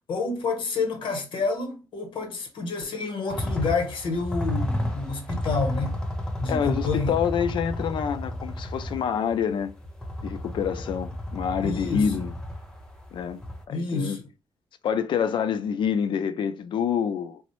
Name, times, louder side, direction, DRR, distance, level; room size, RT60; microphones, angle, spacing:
voice 1, 0.1-6.0 6.4-7.1 11.6-12.1 13.7-14.3, left 3 dB, 90° left, 0.9 m, -29 dB
sound 1, 3.3-13.6, left 1 dB, 10° left, 0.5 m, -32 dB
voice 2, 6.5-9.7 10.2-12.3 13.1-13.4 13.7-14.2 14.8-17.4, left 7 dB, 75° left, 0.4 m, -27 dB
3.6 x 2.0 x 3.0 m
wide cardioid pair, 145°, 8 cm